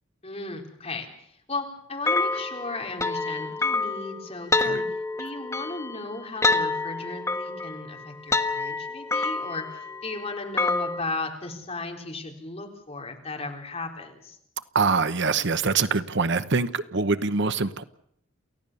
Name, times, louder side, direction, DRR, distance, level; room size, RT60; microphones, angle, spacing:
voice 1, 0.2-4.8 5.2-14.4, left 3 dB, 30° left, 4.1 m, -36 dB
sound 1, 2.1-11.0, left 3 dB, 15° left, 1.3 m, -28 dB
voice 2, 14.7-17.8, right 4 dB, 60° right, 0.9 m, -24 dB
29.0 x 16.0 x 6.9 m
head